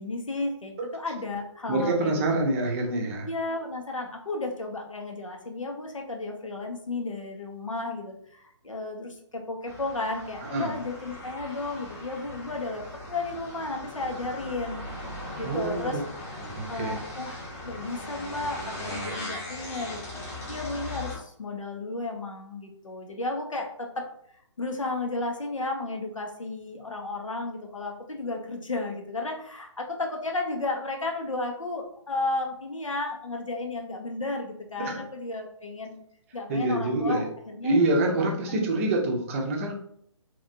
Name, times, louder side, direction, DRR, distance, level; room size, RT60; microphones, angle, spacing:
voice 1, 0.0-2.2 3.2-14.8 15.4-16.0 16.7-20.1 20.5-24.1 24.6-36.0 36.3-37.8 38.1-38.8, left 2 dB, 90° left, 2 dB, 0.8 m, -33 dB
voice 2, 1.7-3.3 10.5-10.7 15.4-16.0 16.4-17.0 34.8-35.0 36.5-37.3 37.6-39.7, right 2 dB, 25° right, 1 dB, 0.5 m, -26 dB
sound 1, 9.7-21.2, left 1 dB, 15° left, 0.9 m, -39 dB
2.9 x 2.4 x 2.6 m, 0.68 s
figure-of-eight pair, 140°, 16 cm